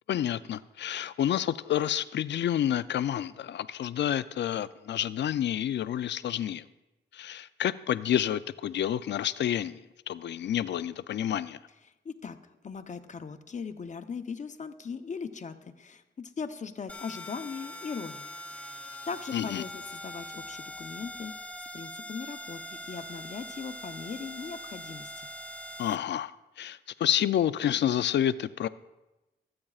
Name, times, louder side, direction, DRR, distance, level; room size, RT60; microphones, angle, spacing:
voice 1, 0.1-6.6 7.1-9.8 10.1-11.6 19.3-19.6 25.8-26.3 26.6-28.7, left 10 dB, 65° left, 15 dB, 0.4 m, -29 dB
voice 2, 11.8-12.4 12.6-25.3, left 5 dB, 40° left, 8 dB, 0.8 m, -40 dB
sound 1, 16.9-26.0, equal, 5° left, 0.7 m, -42 dB
25.0 x 8.7 x 2.4 m, 1.0 s
cardioid pair, 100°, 20 cm